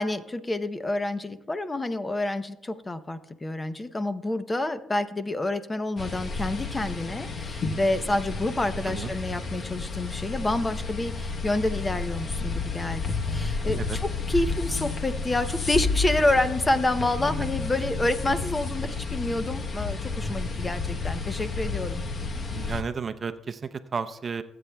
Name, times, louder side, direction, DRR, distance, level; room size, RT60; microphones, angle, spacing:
voice 1, 0.0-22.0, left 2 dB, 20° left, 11 dB, 0.7 m, -28 dB
sound 1, 6.0-22.8, left 4 dB, 45° left, 1.0 m, -31 dB
voice 2, 22.5-24.4, right 5 dB, 40° right, 10 dB, 0.6 m, -32 dB
21.0 x 8.5 x 2.3 m, 0.91 s
cardioid pair, 90°, 0 cm